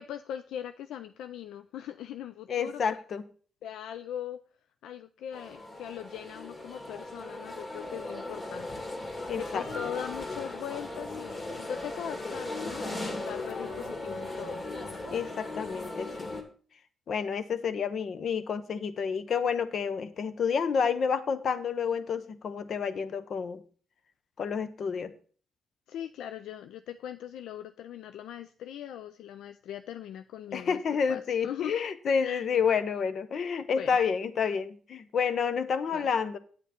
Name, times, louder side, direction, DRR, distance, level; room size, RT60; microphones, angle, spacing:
voice 1, 0.0-2.8 3.6-4.4 4.8-8.7 9.4-14.7 25.9-30.8 31.1-31.8 32.2-32.5 33.8-34.0 35.9-36.1, left 10 dB, 90° left, 11 dB, 0.3 m, -40 dB
voice 2, 2.5-3.2 9.3-9.6 15.1-16.3 17.1-23.6 24.4-25.1 30.5-36.4, left 6 dB, 65° left, 12 dB, 0.8 m, -29 dB
sound 1, 5.3-16.4, left 2 dB, 40° left, 2.5 m, -38 dB
8.8 x 8.3 x 4.3 m, 0.42 s
cardioid pair, 70°, 0 cm